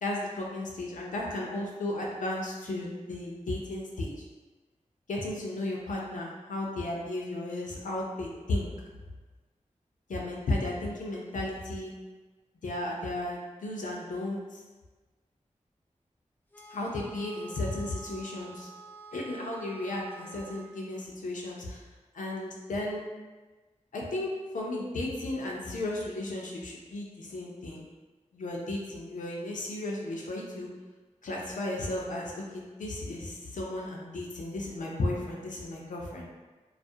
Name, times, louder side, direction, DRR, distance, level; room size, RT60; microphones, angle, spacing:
voice 1, 0.0-4.1 5.1-8.7 10.1-11.9 12.6-14.6 16.7-18.7 19.1-21.8 22.1-23.0 23.9-27.8 28.3-30.7 31.2-36.3, left 2 dB, 85° left, -2 dB, 0.5 m, -34 dB
sound 1, 16.5-20.7, right 4 dB, 15° left, 0.3 m, -49 dB
2.3 x 2.0 x 2.6 m, 1.3 s
cardioid pair, 50°, 13 cm